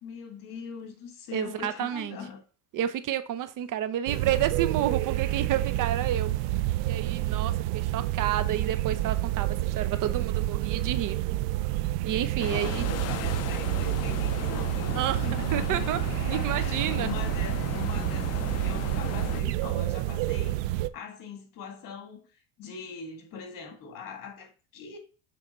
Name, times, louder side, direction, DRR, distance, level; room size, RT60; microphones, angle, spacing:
voice 1, 0.0-2.4 12.2-16.0 16.3-25.0, left 6 dB, 55° left, 2.0 m, -42 dB
voice 2, 1.3-2.2 2.7-6.3 6.8-11.2 12.0-12.9 15.0-16.0 16.3-17.1, right 11 dB, 50° right, 0.8 m, -30 dB
sound 1, 4.1-20.9, right 15 dB, 90° right, 0.6 m, -29 dB
sound 2, 12.4-19.4, left 13 dB, 40° left, 0.5 m, -37 dB
7.3 x 3.8 x 4.3 m
cardioid pair, 115°, 39 cm